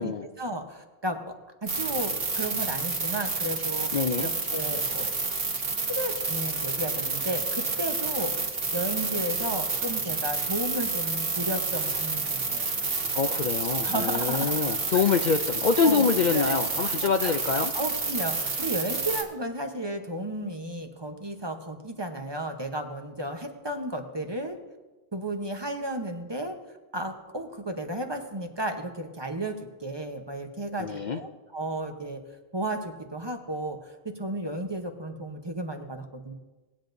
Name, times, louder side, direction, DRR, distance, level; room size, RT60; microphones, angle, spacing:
voice 1, 0.0-1.3 1.6-5.2 5.9-8.3 8.7-12.7 13.8-14.8 15.8-16.1 16.3-16.6 17.0-17.3 17.7-24.6 25.1-26.6 26.9-29.5 29.8-32.2 32.5-33.9 34.2-36.3, right 1 dB, 25° right, 4 dB, 0.9 m, -33 dB
sound 1, 1.7-19.2, right 3 dB, 70° right, 1.7 m, -29 dB
voice 2, 3.9-4.3 13.1-17.7 30.8-31.2, left 6 dB, 55° left, 7 dB, 0.6 m, -25 dB
19.0 x 9.5 x 2.6 m, 1.2 s
omnidirectional pair, 1.0 m